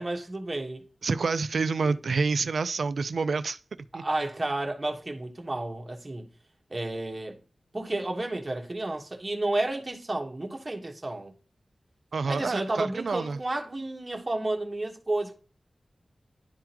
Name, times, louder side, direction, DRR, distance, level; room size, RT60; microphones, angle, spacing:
voice 1, 0.0-0.9 1.8-1.9 3.9-6.3 6.7-7.4 7.7-11.3 12.3-15.3, right 2 dB, 30° right, 1.3 m, -31 dB
voice 2, 1.0-3.6 3.9-4.0 12.1-13.4, right 4 dB, 80° right, 0.4 m, -28 dB
11.0 x 3.7 x 2.9 m
wide cardioid pair, 85°, 0 cm